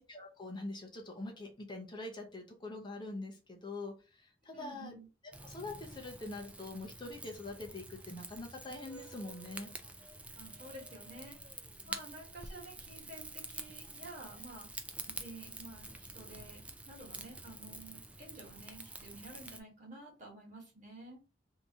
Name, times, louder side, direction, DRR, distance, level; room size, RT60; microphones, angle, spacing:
voice 1, 0.0-4.9 5.4-9.7 11.9-12.0, left 2 dB, 25° left, 1 dB, 0.7 m, -44 dB
voice 2, 4.5-5.1 10.3-11.4 11.8-14.7 15.1-21.2, right 1 dB, 45° right, -1 dB, 1.6 m, -51 dB
Rain / Fire, 5.3-19.6, right 2 dB, 5° right, 0.3 m, -48 dB
2.9 x 2.8 x 3.5 m, 0.31 s
head